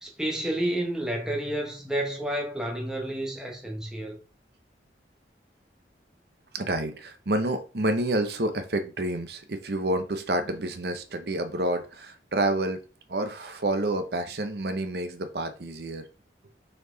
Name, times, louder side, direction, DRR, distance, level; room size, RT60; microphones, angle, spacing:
voice 1, 0.0-4.2, right 1 dB, 5° right, 1.2 m, -30 dB
voice 2, 6.5-12.8 13.1-16.0, right 1 dB, 65° right, 0.8 m, -29 dB
5.5 x 4.5 x 3.9 m
head